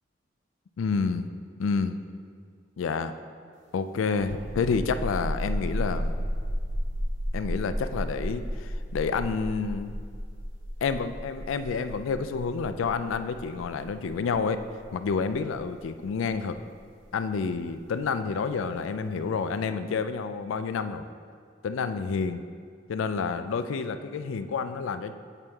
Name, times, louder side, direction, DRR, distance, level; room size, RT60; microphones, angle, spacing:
voice 1, 0.8-1.3 1.6-2.0 2.8-3.1 3.7-6.2 7.3-10.0 10.8-14.6 14.9-16.6 17.1-21.0 21.6-22.4 22.9-25.1, left 5 dB, 80° left, 10 dB, 0.4 m, -29 dB
sound 1, 4.1-17.5, equal, 75° right, 0.9 m, -33 dB
8.3 x 3.5 x 5.3 m, 2.1 s
head